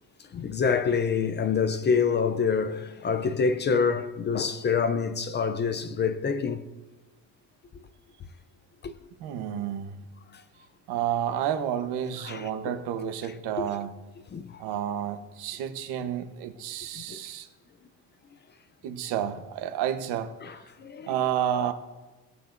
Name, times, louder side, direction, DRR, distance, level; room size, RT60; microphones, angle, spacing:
voice 1, 0.3-6.6 8.8-8.9 10.3-10.4 12.2-12.5 13.6-13.7 14.3-14.6 17.0-17.2 20.4-21.1, left 5 dB, 25° left, 0.5 m, -26 dB
voice 2, 9.2-10.1 10.9-13.9 14.6-17.5 18.8-20.3 21.1-21.7, right 10 dB, 80° right, 1.1 m, -30 dB
19.5 x 8.3 x 2.6 m
cardioid pair, 145°, 39 cm